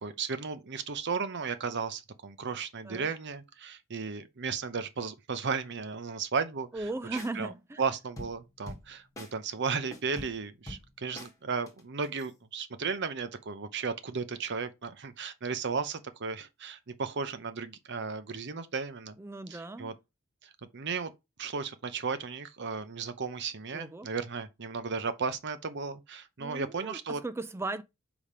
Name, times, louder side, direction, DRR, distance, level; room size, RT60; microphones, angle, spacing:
voice 1, 0.0-6.8 7.1-7.5 7.8-19.2 19.5-19.9 20.4-21.1 21.4-27.2, right 5 dB, 55° right, 0.8 m, -35 dB
voice 2, 6.7-7.8 19.2-20.0 23.7-24.1 26.4-27.8, right 2 dB, 10° right, 0.3 m, -37 dB
sound 1, 6.8-6.9 7.2-7.3 8.2-8.9 9.2-9.3 9.7-11.3 11.7-12.3, left 1 dB, 15° left, 1.5 m, -44 dB
4.9 x 3.5 x 5.5 m
head